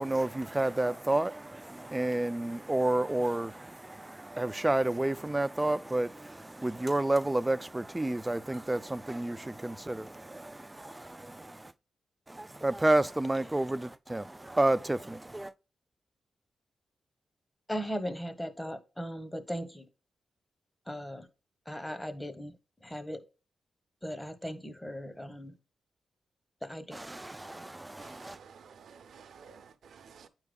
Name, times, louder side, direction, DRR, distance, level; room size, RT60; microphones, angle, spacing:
voice 1, 0.0-11.7 12.3-15.5 26.9-28.4, right 2 dB, 15° right, 0.3 m, -30 dB
voice 2, 17.7-19.9 20.9-21.3 21.7-23.2 24.0-25.6 26.6-27.0, equal, 15° left, 1.0 m, -38 dB
voice 3, 28.0-30.3, right 6 dB, 75° right, 0.6 m, -53 dB
8.9 x 4.7 x 2.3 m
cardioid pair, 60°, 0 cm